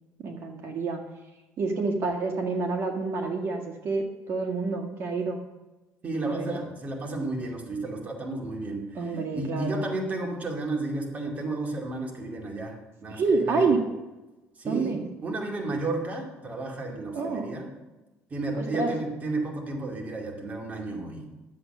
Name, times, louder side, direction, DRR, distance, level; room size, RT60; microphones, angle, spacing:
voice 1, 0.2-1.0 1.6-5.4 6.3-6.6 9.0-9.9 13.1-13.8 14.6-15.0 17.1-17.5 18.6-18.9, right 4 dB, 50° right, 3 dB, 1.8 m, -28 dB
voice 2, 6.0-13.8 14.6-17.7 18.3-21.3, right 2 dB, 30° right, 0 dB, 2.4 m, -32 dB
11.5 x 7.9 x 6.7 m, 1.1 s
cardioid pair, 125°, 5 cm